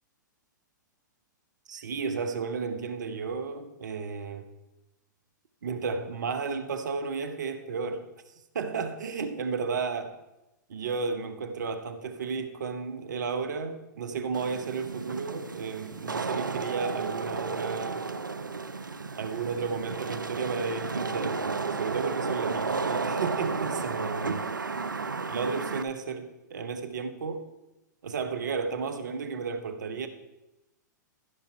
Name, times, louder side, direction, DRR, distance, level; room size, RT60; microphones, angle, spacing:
voice 1, 1.7-4.5 5.6-8.1 8.5-10.1 10.7-18.1 19.1-24.4 25.2-27.5 28.0-30.1, right 5 dB, 65° right, 8 dB, 1.0 m, -33 dB
Wind / Rain, 14.3-25.8, right 4 dB, 90° right, 0.6 m, -33 dB
14.5 x 5.9 x 4.4 m, 0.98 s
figure-of-eight pair, 110°, 10 cm